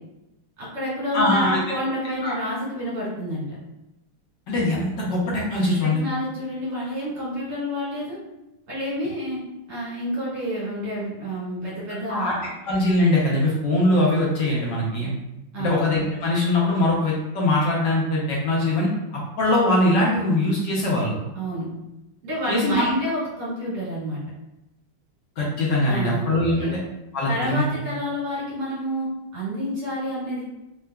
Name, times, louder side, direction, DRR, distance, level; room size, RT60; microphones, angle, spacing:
voice 1, 0.6-3.5 5.8-8.2 8.7-9.4 9.7-12.5 15.5-15.8 21.3-21.7 22.2-24.2 25.9-26.2 26.5-26.8 27.3-30.4, equal, 85° right, -8 dB, 2.5 m, -29 dB
voice 2, 1.1-1.6 2.2-2.3 4.5-6.0 12.1-12.3 12.6-15.1 15.6-21.1 22.5-22.9 25.4-26.8 27.1-27.6, left 1 dB, 65° left, -4 dB, 1.2 m, -22 dB
4.6 x 2.3 x 2.2 m, 0.93 s
omnidirectional pair, 2.4 m